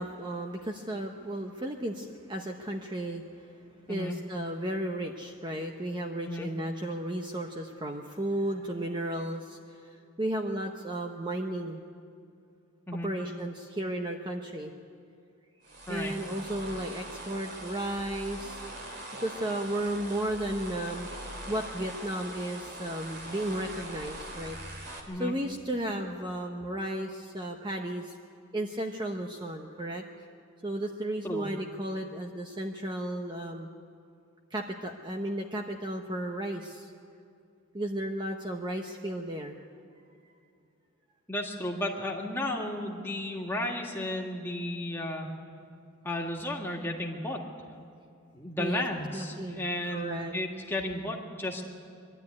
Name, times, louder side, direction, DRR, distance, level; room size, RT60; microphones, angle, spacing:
voice 1, 0.0-3.6 3.9-11.8 13.0-14.7 15.9-18.6 19.2-21.1 21.5-24.6 25.2-28.2 28.5-30.0 30.6-33.7 34.5-36.9 37.7-39.6 48.6-48.8 49.1-49.6 49.9-50.3, right 1 dB, 20° right, 2 dB, 0.9 m, -34 dB
sound 1, 15.6-25.0, right 1 dB, 50° right, 3.0 m, -42 dB
voice 2, 41.3-45.3 46.0-47.4 48.3-51.6, left 1 dB, 10° left, -1 dB, 2.0 m, -33 dB
23.5 x 13.0 x 9.6 m, 2.5 s
head